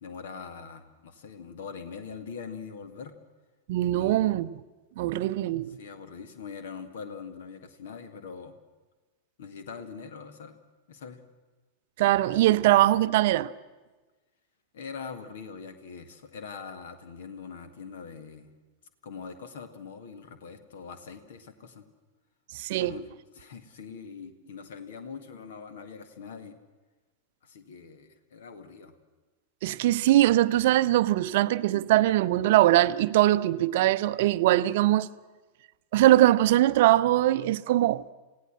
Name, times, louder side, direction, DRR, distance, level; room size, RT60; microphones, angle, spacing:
voice 1, 0.0-3.2 3.9-4.4 5.8-8.6 9.4-10.6 10.9-11.2 14.7-18.5 19.0-21.8 22.8-23.1 23.3-26.6 27.4-29.0, left 6 dB, 60° left, 1.9 m, -42 dB
voice 2, 3.7-4.5 5.0-5.8 12.0-13.5 22.5-22.9 29.6-35.1 35.9-38.0, right 15 dB, 50° right, 0.7 m, -22 dB
27.5 x 17.0 x 7.6 m
figure-of-eight pair, 90°, 0 cm